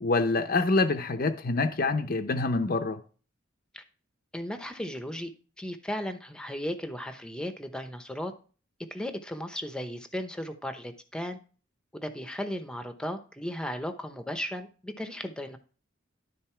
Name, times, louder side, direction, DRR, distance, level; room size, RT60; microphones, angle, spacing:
voice 1, 0.0-3.0, left 3 dB, 45° left, 0.6 m, -26 dB
voice 2, 4.3-5.3 5.6-8.3 8.9-11.4 11.9-15.6, equal, 5° left, 0.8 m, -36 dB
12.0 x 4.0 x 4.5 m
head